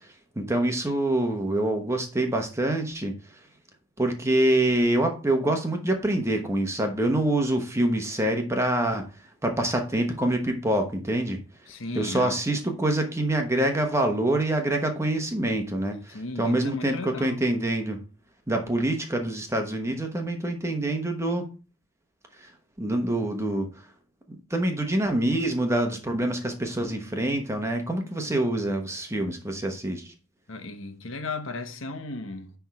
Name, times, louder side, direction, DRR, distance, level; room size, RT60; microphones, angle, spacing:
voice 1, 0.4-3.1 4.0-9.1 9.4-11.4 11.9-18.0 18.5-21.5 22.4-22.5 22.8-23.7 24.5-30.1, right 1 dB, 15° right, 1.1 m, -26 dB
voice 2, 11.7-12.4 16.1-17.4 30.5-32.5, left 2 dB, 75° left, 1.2 m, -35 dB
10.0 x 3.5 x 4.8 m
head